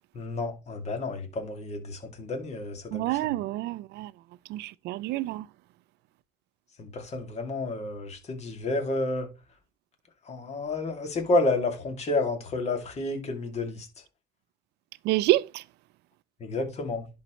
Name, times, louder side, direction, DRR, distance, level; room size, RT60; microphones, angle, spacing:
voice 1, 0.1-3.3 6.8-9.3 10.2-13.9 16.4-17.1, left 2 dB, 40° left, 2.4 m, -30 dB
voice 2, 2.9-4.1 4.5-5.5 15.0-15.6, right 17 dB, 80° right, 0.4 m, -27 dB
11.0 x 4.4 x 3.1 m
cardioid pair, 110°, 17 cm